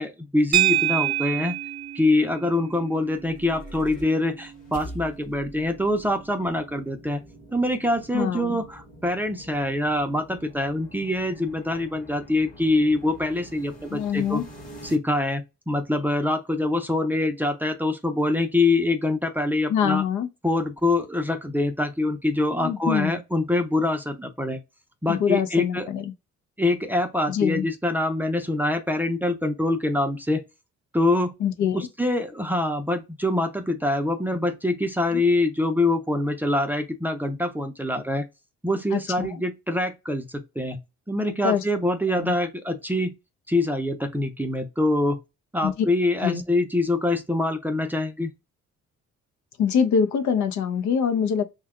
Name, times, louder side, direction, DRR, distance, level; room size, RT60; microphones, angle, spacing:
voice 1, 0.0-1.6 1.9-7.2 7.5-14.4 14.8-20.0 20.4-24.6 25.0-25.9 26.6-30.4 30.9-31.3 31.7-38.3 38.6-40.8 41.1-43.1 43.5-45.2 45.5-48.3, left 2 dB, 5° right, 0.5 m, -24 dB
sound 1, 0.5-9.0, right 13 dB, 65° right, 0.8 m, -30 dB
sound 2, 2.9-15.0, equal, 25° left, 1.0 m, -45 dB
voice 2, 8.1-8.6 13.9-14.5 19.7-20.3 22.5-23.2 25.1-26.1 27.3-27.7 31.4-31.8 35.1-35.2 38.9-39.3 41.4-41.6 42.1-42.3 45.6-45.9 46.2-46.4 49.6-51.4, left 7 dB, 70° left, 0.6 m, -24 dB
2.7 x 2.3 x 3.5 m
cardioid pair, 90°, 30 cm